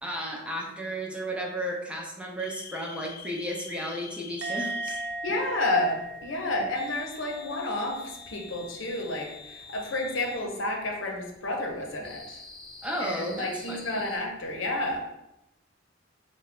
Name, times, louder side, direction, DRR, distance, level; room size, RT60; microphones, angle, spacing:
voice 1, 0.0-5.0 5.3-5.4 6.6-6.7 12.8-14.1, equal, 5° right, -1 dB, 0.5 m, -34 dB
sound 1, 2.4-5.1 6.7-10.5 12.0-14.2, left 5 dB, 30° left, 1.0 m, -46 dB
Musical instrument, 4.4-7.8 8.1-8.5, right 2 dB, 65° right, 0.5 m, -38 dB
voice 2, 5.2-12.4 13.0-15.0, left 2 dB, 90° left, 1 dB, 0.7 m, -30 dB
3.3 x 2.2 x 3.6 m, 0.89 s
head